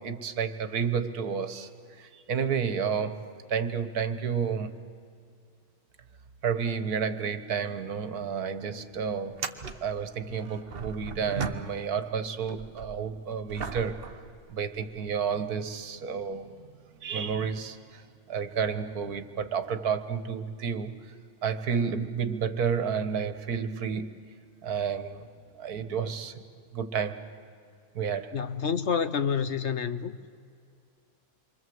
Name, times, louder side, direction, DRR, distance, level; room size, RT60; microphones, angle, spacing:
voice 1, 0.0-1.7 2.0-4.8 6.4-9.4 9.8-14.1 14.5-16.7 17.0-21.2 21.4-24.1 24.6-25.3 25.5-26.4 26.7-27.2 28.0-28.4, right 6 dB, 80° right, 1.7 m, -31 dB
sound 1, 7.9-8.0 8.3-8.4 9.2-12.1 12.4-15.1 15.8-15.9 20.0-20.2 21.5-21.6, right 5 dB, 40° right, 1.1 m, -38 dB
voice 2, 28.3-30.2, left 6 dB, 55° left, 0.9 m, -28 dB
28.0 x 24.0 x 7.8 m
omnidirectional pair, 1.6 m